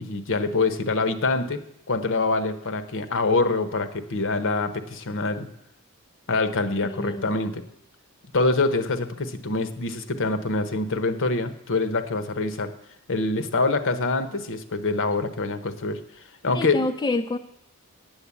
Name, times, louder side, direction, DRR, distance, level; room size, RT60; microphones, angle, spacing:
voice 1, 0.0-1.6 1.9-5.5 6.3-7.6 8.3-12.7 13.1-16.0 16.4-16.9, left 3 dB, 60° left, 11 dB, 1.0 m, -25 dB
voice 2, 6.8-7.3 16.5-17.4, left 2 dB, 20° left, 7 dB, 0.4 m, -27 dB
9.0 x 7.9 x 8.3 m, 0.76 s
head